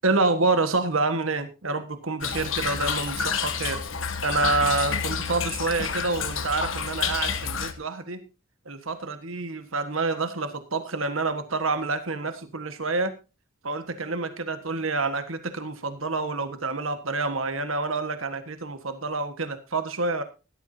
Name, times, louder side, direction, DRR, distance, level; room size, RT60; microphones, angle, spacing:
voice 1, 0.0-3.8 4.2-8.2 8.6-13.1 13.6-20.2, right 3 dB, 80° right, 9 dB, 1.6 m, -27 dB
Toilet flush / Trickle dribble, 2.2-7.7, left 6 dB, 70° left, 1.4 m, -29 dB
16.5 x 13.0 x 2.8 m, 0.29 s
head